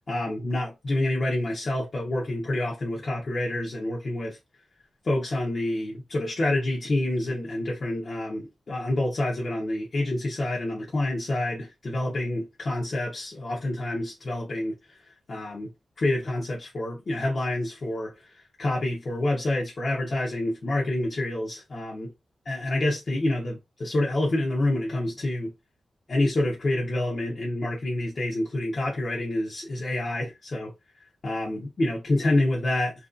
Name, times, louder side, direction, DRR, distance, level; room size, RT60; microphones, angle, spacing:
voice 1, 0.1-4.4 5.0-15.7 16.0-22.1 22.4-25.5 26.1-30.7 31.2-32.9, left 1 dB, 45° left, 0.8 m, -28 dB
2.9 x 2.6 x 2.5 m
wide cardioid pair, 120°, 0 cm